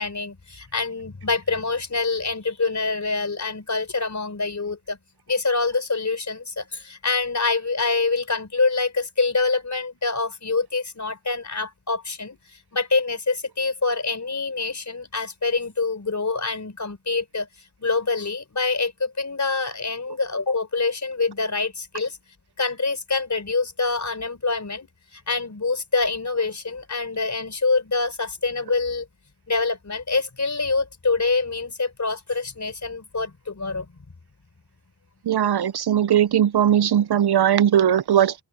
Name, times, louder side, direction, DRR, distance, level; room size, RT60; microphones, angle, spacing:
voice 1, 0.0-5.0 5.3-12.4 12.7-17.5 17.8-22.2 22.6-29.1 29.5-33.9, left 4 dB, 40° left, 4.1 m, -25 dB
voice 2, 35.3-38.3, right 10 dB, 60° right, 0.5 m, -19 dB
open air
wide cardioid pair, 110°, 44 cm